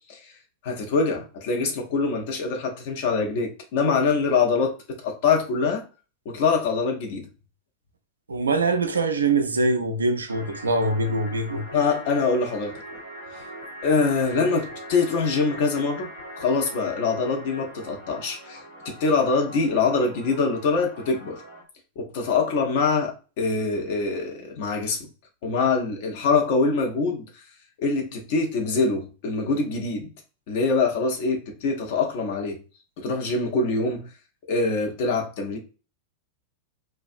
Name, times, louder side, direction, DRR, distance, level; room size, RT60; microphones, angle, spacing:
voice 1, 0.6-5.9 6.3-7.3 11.7-12.8 13.3-13.4 13.8-21.4 22.0-25.1 25.4-27.3 27.8-30.1 30.5-32.6 33.0-34.1 34.5-35.6, left 4 dB, 50° left, 0.6 m, -24 dB
voice 2, 8.3-11.7, right 3 dB, 75° right, 0.3 m, -23 dB
sound 1, 10.3-21.6, right 1 dB, 85° left, 1.1 m, -41 dB
2.4 x 2.2 x 2.5 m
figure-of-eight pair, 90°, 0 cm